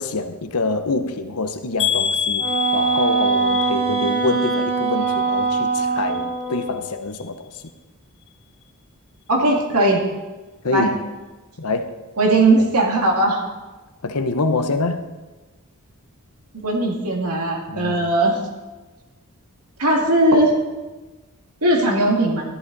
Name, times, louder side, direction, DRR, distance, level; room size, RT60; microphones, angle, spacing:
voice 1, 0.0-2.4 2.7-7.5 10.6-11.1 11.6-11.9 12.5-12.7 14.0-15.1 17.7-18.1, left 3 dB, 80° left, 8 dB, 0.9 m, -25 dB
sound 1, 1.8-5.8 6.1-6.7 7.1-7.3 7.6-7.7, left 7 dB, 55° left, 2.0 m, -27 dB
Wind instrument woodwind instrument, 2.4-6.9, right 5 dB, 55° right, 4.0 m, -22 dB
voice 2, 9.3-10.0 10.7-10.9 12.2-13.4 16.6-18.4 19.8-20.6 21.6-22.4, right 1 dB, 90° right, 0 dB, 2.2 m, -18 dB
13.5 x 11.5 x 4.0 m, 1.2 s
head